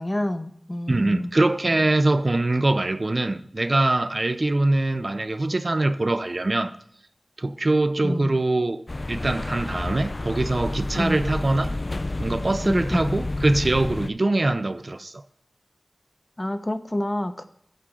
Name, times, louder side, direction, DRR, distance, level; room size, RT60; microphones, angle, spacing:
voice 1, 0.0-1.3 8.0-8.3 10.9-11.2 12.7-13.1 16.4-17.4, left 1 dB, 30° left, 0.8 m, -28 dB
voice 2, 0.9-6.7 7.4-11.8 12.2-15.2, right 2 dB, 55° right, 0.6 m, -23 dB
sound 1, 8.9-14.1, left 2 dB, 50° left, 0.4 m, -30 dB
12.0 x 7.6 x 3.7 m
wide cardioid pair, 45°, 0 cm